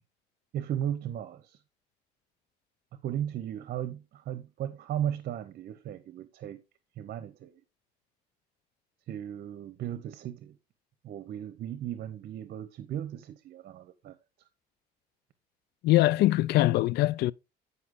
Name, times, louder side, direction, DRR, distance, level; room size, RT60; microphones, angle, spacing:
voice 1, 0.5-1.6 2.9-6.6 7.0-7.6 9.1-10.6 11.0-14.2, right 10 dB, 60° right, 0.9 m, -36 dB
voice 2, 15.8-17.3, left 16 dB, 75° left, 0.4 m, -22 dB
9.6 x 5.6 x 3.8 m
cardioid pair, 110°, 17 cm